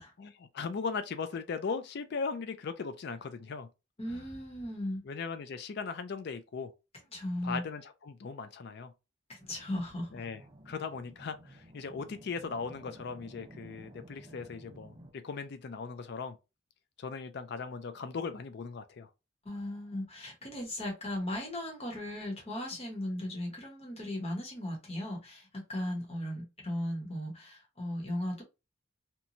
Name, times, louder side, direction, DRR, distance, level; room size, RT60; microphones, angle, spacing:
voice 1, 0.2-3.7 4.1-4.2 5.1-6.7 7.4-8.9 10.1-10.4 10.7-16.4 17.0-19.1, left 5 dB, 60° left, 0.4 m, -38 dB
voice 2, 4.0-5.0 7.1-7.6 9.3-10.1 19.4-28.4, left 1 dB, 30° left, 1.0 m, -37 dB
sound 1, 9.4-15.1, right 1 dB, 30° right, 0.5 m, -53 dB
2.9 x 2.2 x 2.6 m
head